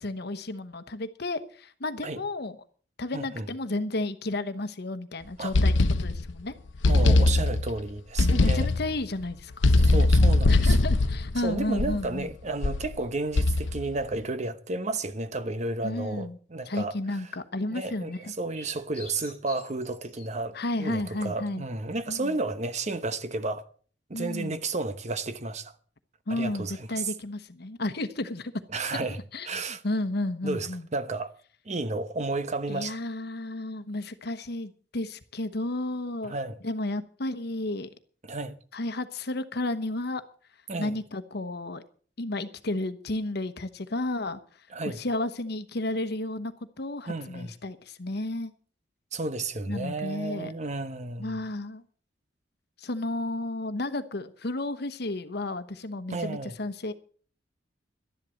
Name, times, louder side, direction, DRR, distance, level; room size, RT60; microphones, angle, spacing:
voice 1, 0.0-2.6 3.0-6.5 8.3-10.0 10.5-12.3 15.8-16.4 16.7-18.3 20.5-21.6 22.1-22.3 24.1-24.6 26.3-28.5 29.3-30.9 32.7-36.4 36.6-37.9 38.7-40.2 40.8-41.8 42.2-44.4 44.8-48.5 49.7-50.5 51.2-51.8 52.8-56.9, left 2 dB, 60° left, 1.1 m, -32 dB
voice 2, 3.1-3.5 5.4-5.5 6.9-8.7 9.8-10.8 11.4-16.9 17.7-23.6 24.1-25.7 26.3-27.1 28.7-29.2 29.4-29.8 30.4-31.3 31.6-33.0 36.2-36.6 38.2-38.6 40.7-40.9 44.7-45.0 47.1-47.5 49.1-51.4 56.1-56.6, right 3 dB, 40° right, 1.0 m, -32 dB
sound 1, 5.5-6.4 6.8-7.8 8.2-9.0 9.6-12.1 12.6-13.0 13.4-13.9, left 2 dB, 80° left, 0.7 m, -21 dB
sound 2, 17.7-20.3 20.7-20.8, left 3 dB, 5° left, 4.6 m, -48 dB
12.5 x 11.0 x 6.4 m
head